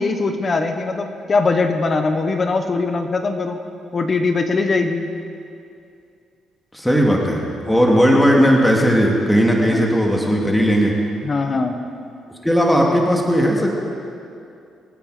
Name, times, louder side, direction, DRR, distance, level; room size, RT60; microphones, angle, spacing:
voice 1, 0.0-3.6 3.9-5.1 9.7-9.9 11.2-11.7, left 3 dB, 40° left, 6 dB, 1.2 m, -21 dB
voice 2, 6.7-10.9 12.4-13.7, equal, 5° left, -1 dB, 2.4 m, -16 dB
26.5 x 9.2 x 5.0 m, 2.5 s
cardioid pair, 90°, 0 cm